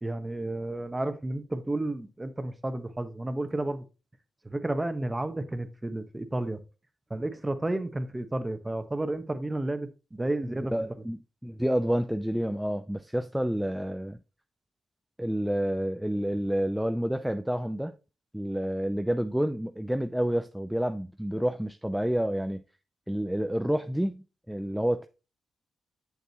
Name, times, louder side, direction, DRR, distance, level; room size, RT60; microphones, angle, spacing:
voice 1, 0.0-3.8 4.4-6.6 7.1-10.7, right 2 dB, 20° right, 1.2 m, -32 dB
voice 2, 10.4-14.2 15.2-17.9 18.3-22.6 23.1-25.1, equal, 5° right, 0.5 m, -29 dB
7.9 x 6.5 x 3.0 m
supercardioid pair, 45°, 0 cm